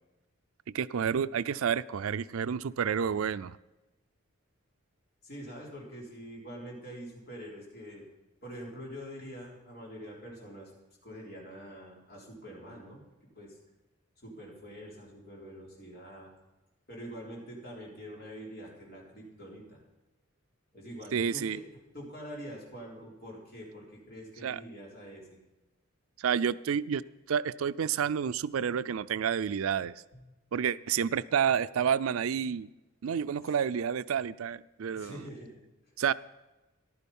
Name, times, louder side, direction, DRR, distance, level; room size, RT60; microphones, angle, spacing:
voice 1, 0.7-3.6 21.1-21.6 24.4-24.6 26.2-27.0 27.3-29.9 30.5-32.7 33.0-35.2 36.0-36.1, right 7 dB, 85° right, 17 dB, 0.4 m, -29 dB
voice 2, 5.2-8.1 8.4-10.7 11.0-13.0 13.4-13.6 14.2-16.3 16.9-19.8 20.7-21.6 21.9-25.4 30.1-30.3 33.3-33.6 34.9-35.5, equal, 50° left, -2 dB, 3.8 m, -45 dB
14.0 x 11.5 x 5.4 m, 1.1 s
head